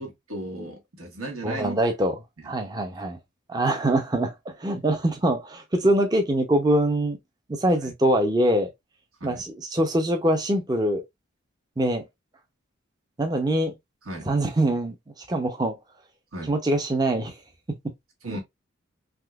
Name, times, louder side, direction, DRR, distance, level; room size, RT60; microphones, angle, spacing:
voice 1, 0.0-1.7 2.4-2.5 7.8-7.9 9.2-9.4 14.0-14.3 16.3-16.5 18.2-18.4, right 1 dB, 90° right, 1.4 m, -35 dB
voice 2, 1.4-2.2 2.4-3.2 3.5-7.2 7.5-8.7 9.2-11.0 11.8-12.0 13.2-13.7 14.3-15.0 15.3-15.8 16.5-17.3, right 1 dB, 20° right, 0.5 m, -23 dB
3.5 x 2.8 x 2.3 m
head